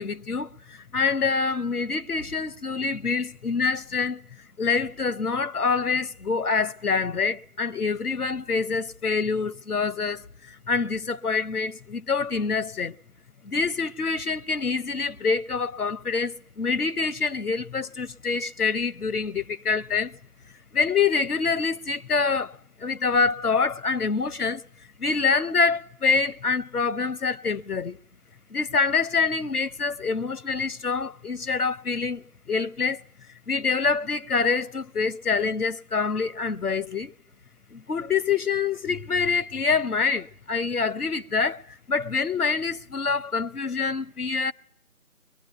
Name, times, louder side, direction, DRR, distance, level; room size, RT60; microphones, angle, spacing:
voice 1, 0.0-4.2 4.6-12.9 13.4-20.2 20.7-24.6 25.0-28.0 28.5-33.0 33.5-37.1 37.7-44.5, left 5 dB, 90° left, 0.8 m, -26 dB
22.5 x 22.0 x 8.0 m
figure-of-eight pair, 180°, 44 cm